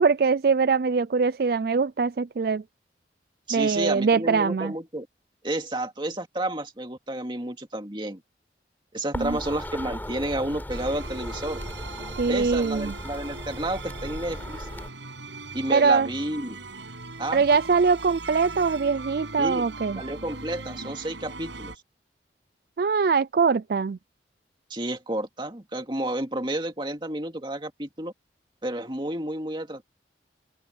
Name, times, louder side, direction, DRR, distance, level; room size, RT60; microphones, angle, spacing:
voice 1, 0.0-2.6 3.5-4.7 9.1-9.4 12.2-12.9 15.7-16.1 17.3-20.0 22.8-24.0, right 5 dB, 55° right, 0.4 m, -22 dB
voice 2, 3.5-5.1 5.4-8.2 8.9-11.6 12.3-14.7 15.5-16.6 17.2-17.4 19.4-19.7 20.0-21.7 24.7-28.1 28.6-29.8, right 1 dB, 25° right, 2.3 m, -31 dB
sound 1, 9.1-14.9, equal, 10° left, 6.7 m, -37 dB
sound 2, 10.7-21.8, right 3 dB, 90° right, 7.1 m, -40 dB
open air
head